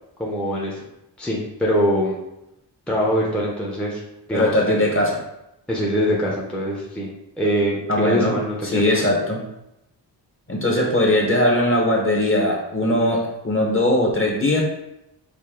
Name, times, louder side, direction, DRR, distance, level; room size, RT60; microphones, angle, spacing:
voice 1, 0.2-0.8 1.2-2.1 2.9-4.0 4.3-4.8 5.7-7.1 7.4-9.2, equal, 5° left, -4 dB, 0.6 m, -23 dB
voice 2, 4.3-5.1 7.9-8.4 8.6-9.4 10.5-14.6, left 1 dB, 30° left, -1 dB, 0.9 m, -20 dB
5.0 x 2.6 x 3.7 m, 0.87 s
wide cardioid pair, 145°, 42 cm